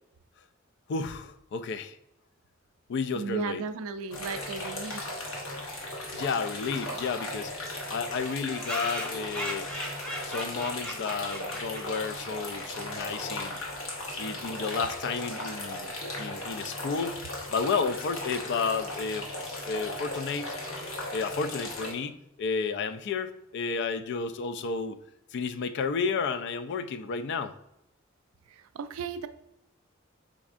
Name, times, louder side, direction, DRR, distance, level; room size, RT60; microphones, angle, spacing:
voice 1, 0.9-2.0 2.9-3.6 6.1-7.5 7.9-9.7 10.2-13.6 14.2-15.9 16.2-17.2 17.5-20.6 21.1-25.0 25.3-27.5, left 5 dB, 55° left, 11 dB, 0.3 m, -32 dB
voice 2, 3.1-5.1 28.5-29.3, right 5 dB, 80° right, 11 dB, 0.3 m, -35 dB
sound 1, 4.1-21.9, left 1 dB, 85° left, 1.0 m, -37 dB
sound 2, 6.5-6.6 6.8-6.9 7.1-7.2 7.4-7.5 8.2-12.4, equal, 5° left, 0.6 m, -38 dB
5.1 x 3.5 x 2.4 m, 0.81 s
head